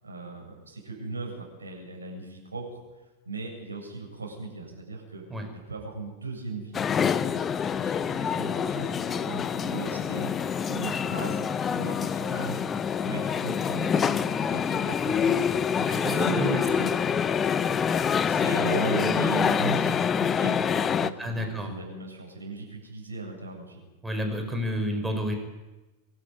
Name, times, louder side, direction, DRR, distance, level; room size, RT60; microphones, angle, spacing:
voice 1, 0.0-2.8 3.2-5.2 5.5-6.8 7.1-12.6 13.0-16.3 16.5-16.7 17.0-17.1 18.2-23.9, right 3 dB, 75° right, -1 dB, 7.9 m, -38 dB
sound 1, 6.7-21.1, left 7 dB, 20° left, 0.8 m, -26 dB
voice 2, 15.9-16.9 21.2-21.7 24.0-25.4, right 1 dB, 5° right, 4 dB, 4.7 m, -30 dB
24.5 x 12.5 x 9.9 m, 1.1 s
figure-of-eight pair, 90°, 0 cm